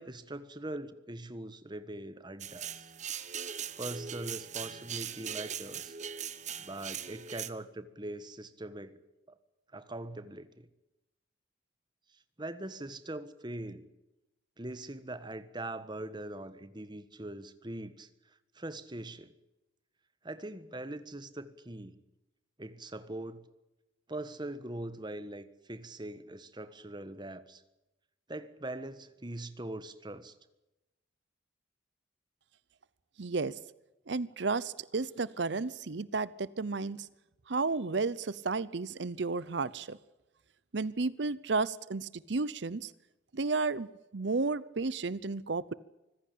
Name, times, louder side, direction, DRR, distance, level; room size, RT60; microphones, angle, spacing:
voice 1, 0.0-2.7 3.8-5.9 6.6-9.0 9.3-9.4 9.7-10.7 12.4-13.8 14.6-18.1 18.5-19.3 20.2-22.0 22.6-23.4 24.1-27.6 28.3-30.3, right 1 dB, 25° right, 13 dB, 1.4 m, -42 dB
sound 1, 2.4-7.5, right 8 dB, 40° right, 1.2 m, -40 dB
voice 2, 33.2-33.5 34.1-37.1 37.5-40.0 40.7-42.9 43.3-43.9 44.1-45.7, right 3 dB, 65° right, 19 dB, 0.7 m, -32 dB
25.0 x 15.5 x 8.5 m, 0.97 s
head